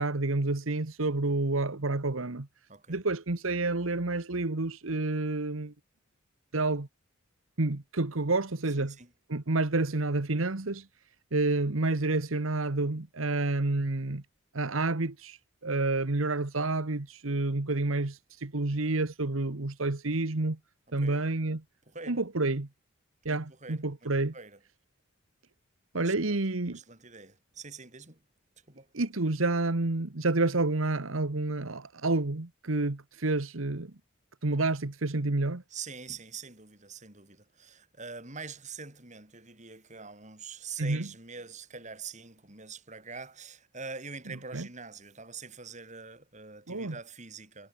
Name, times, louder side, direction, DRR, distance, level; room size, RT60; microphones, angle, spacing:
voice 1, 0.0-2.5 2.9-5.7 6.5-6.9 7.6-8.9 9.3-10.9 11.3-14.2 14.5-20.6 20.9-21.6 22.1-22.7 23.2-24.3 25.9-26.8 28.9-33.9 34.4-35.6 40.8-41.1 44.5-44.7 46.7-46.9, right 2 dB, 80° right, 1.4 m, -29 dB
voice 2, 2.7-3.0 8.8-9.1 21.0-21.2 21.9-22.2 23.2-24.6 25.9-26.4 26.7-28.2 28.7-28.9 35.7-47.7, right 5 dB, 35° right, 7.1 m, -45 dB
head